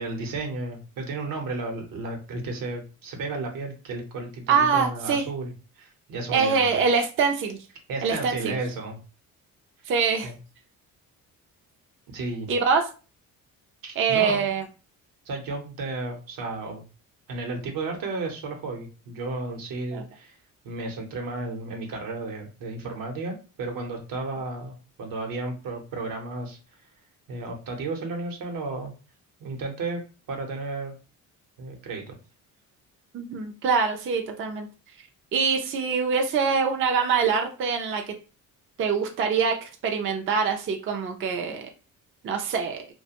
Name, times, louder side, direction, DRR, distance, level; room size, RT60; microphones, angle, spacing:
voice 1, 0.0-5.5 5.8-6.7 7.9-9.0 9.8-9.9 10.2-10.4 12.1-12.5 13.8-14.5 15.2-16.8 17.3-20.4 20.6-26.6 27.3-28.9 29.4-30.0 30.3-30.9 31.6-32.1, right 3 dB, 75° right, 3 dB, 0.9 m, -33 dB
voice 2, 4.5-5.2 6.3-7.6 8.0-8.5 9.9-10.3 12.5-12.9 14.0-14.6 19.9-20.0 33.1-34.7 35.3-38.2 38.8-41.7 42.2-42.9, right 5 dB, 40° right, 4 dB, 0.4 m, -24 dB
2.4 x 2.2 x 2.8 m, 0.33 s
cardioid pair, 120°, 34 cm